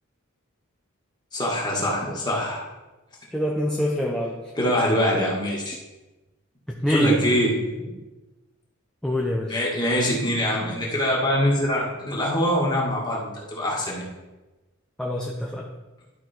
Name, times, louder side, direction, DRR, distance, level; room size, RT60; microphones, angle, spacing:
voice 1, 1.3-2.6 4.6-5.8 6.8-7.9 9.4-14.0, equal, 20° left, -3 dB, 2.0 m, -24 dB
voice 2, 3.3-4.4 6.7-7.2 9.0-9.6 15.0-15.7, left 1 dB, 5° left, -1 dB, 0.6 m, -25 dB
12.0 x 4.3 x 4.5 m, 1.1 s
head